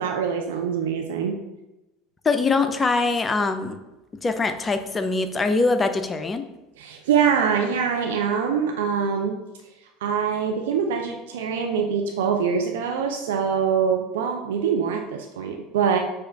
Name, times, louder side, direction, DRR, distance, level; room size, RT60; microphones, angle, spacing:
voice 1, 0.0-1.4 6.8-9.4 10.0-16.0, right 7 dB, 75° right, 3 dB, 0.4 m, -24 dB
voice 2, 2.2-3.8 4.2-6.4, left 3 dB, 25° left, 8 dB, 0.5 m, -23 dB
4.9 x 2.4 x 4.6 m, 0.99 s
hypercardioid pair, 75°, 0 cm